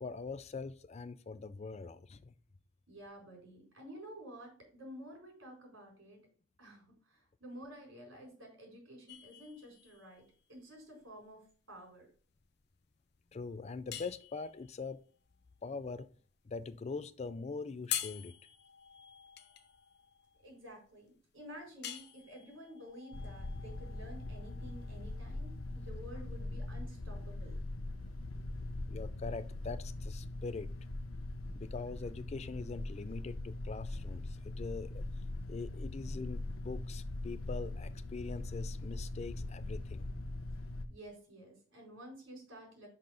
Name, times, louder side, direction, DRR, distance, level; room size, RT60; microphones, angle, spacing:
voice 1, 0.0-2.3 13.3-15.0 15.6-16.1 16.4-18.4 28.9-30.7 31.5-35.0 35.5-40.1, left 4 dB, 30° left, 0.4 m, -43 dB
voice 2, 2.9-6.2 6.6-10.2 10.5-12.1 20.4-27.6 40.9-42.9, equal, 75° right, 4.2 m, -51 dB
sound 1, 9.1-25.9, left 10 dB, 55° left, 0.8 m, -47 dB
sound 2, 23.1-40.9, left 2 dB, 90° left, 0.8 m, -41 dB
6.0 x 5.5 x 5.0 m
head